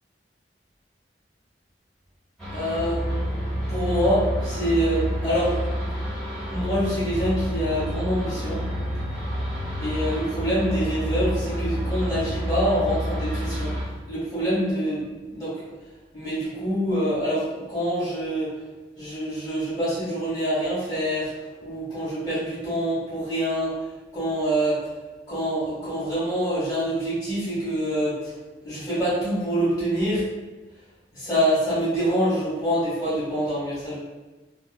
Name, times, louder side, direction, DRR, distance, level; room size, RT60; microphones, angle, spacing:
sound 1, 2.4-13.8, equal, 5° left, 1.0 m, -28 dB
voice 1, 2.5-3.1 3.7-5.6 6.5-8.6 9.8-13.7 14.1-15.6 16.1-18.5 19.0-21.3 21.6-23.8 24.1-24.8 25.3-28.3 28.6-30.2 31.1-34.0, equal, 20° left, -11 dB, 1.5 m, -25 dB
2.7 x 2.5 x 2.3 m, 1.2 s
head